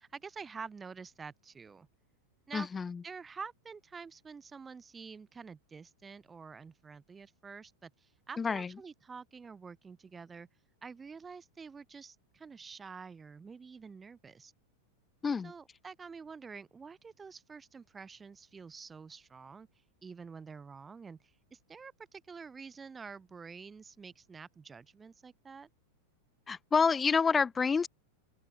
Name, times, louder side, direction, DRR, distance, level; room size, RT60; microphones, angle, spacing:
voice 1, 0.0-1.9 2.5-2.7 3.0-10.5 10.8-14.5 15.4-19.7 20.0-25.7, right 5 dB, 15° right, 3.0 m, -48 dB
voice 2, 2.5-3.0 8.4-8.7 15.2-15.5 26.5-27.9, left 5 dB, 15° left, 0.6 m, -28 dB
open air
figure-of-eight pair, 90°, 0 cm